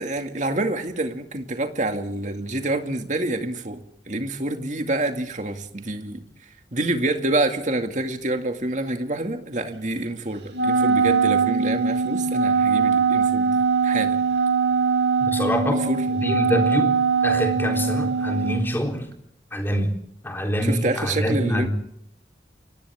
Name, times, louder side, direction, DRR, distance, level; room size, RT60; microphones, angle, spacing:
voice 1, 0.0-3.8 4.1-6.3 6.7-14.2 15.7-16.0 20.6-21.7, right 2 dB, 45° right, 6 dB, 2.4 m, -27 dB
Wind instrument woodwind instrument, 10.5-18.7, right 5 dB, 85° right, 5.8 m, -21 dB
voice 2, 15.2-15.8 16.1-17.0 17.2-19.1 19.5-19.9 20.2-21.7, equal, 10° left, 3 dB, 3.8 m, -25 dB
29.5 x 24.5 x 3.7 m, 0.73 s
head